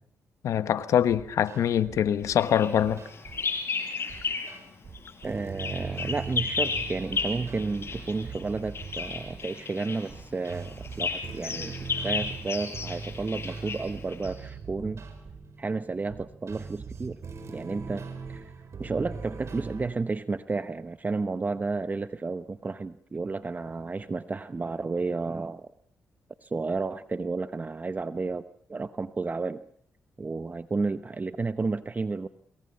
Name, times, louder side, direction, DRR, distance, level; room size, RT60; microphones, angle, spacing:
voice 1, 0.4-3.0, left 9 dB, 80° left, 1.3 m, -24 dB
sound 1, 1.1-2.4 2.8-3.5 4.1-19.9, right 4 dB, 60° right, 4.7 m, -41 dB
Bird vocalization bird call bird song, 2.4-4.6 4.9-14.5, left 5 dB, 50° left, 5.3 m, -34 dB
voice 2, 5.2-11.7 12.0-15.0 15.6-17.2 17.5-18.5 18.8-25.7 26.4-28.4 28.7-29.6 30.2-32.3, right 3 dB, 30° right, 0.9 m, -32 dB
26.5 x 22.5 x 5.7 m
cardioid pair, 65°, 5 cm